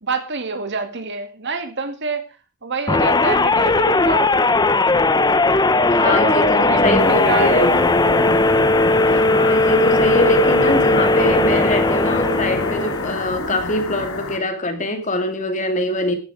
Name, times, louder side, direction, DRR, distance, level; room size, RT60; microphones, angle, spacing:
voice 1, 0.0-2.2 2.6-4.4 6.0-6.9 7.3-7.7 8.3-8.7, right 4 dB, 55° right, 2.2 m, -27 dB
sound 1, 2.9-13.2, left 2 dB, 20° left, 0.7 m, -17 dB
voice 2, 5.8-7.9 9.1-16.1, left 1 dB, 35° left, 2.6 m, -23 dB
sound 2, 7.0-14.4, left 3 dB, 85° left, 2.4 m, -28 dB
14.5 x 11.5 x 4.8 m
head